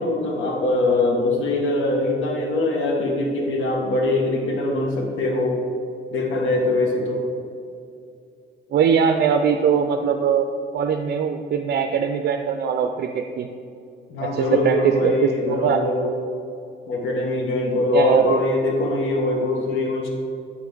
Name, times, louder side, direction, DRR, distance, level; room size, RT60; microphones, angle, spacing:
voice 1, 0.0-5.6 6.1-7.2 14.1-16.1 16.9-20.1, left 2 dB, 80° left, 0 dB, 1.4 m, -22 dB
voice 2, 8.7-10.5 10.7-13.5 14.2-15.1 15.4-15.8 17.9-18.4, right 7 dB, 55° right, 6 dB, 0.4 m, -21 dB
8.0 x 5.7 x 3.9 m, 2.5 s
cardioid pair, 90°, 20 cm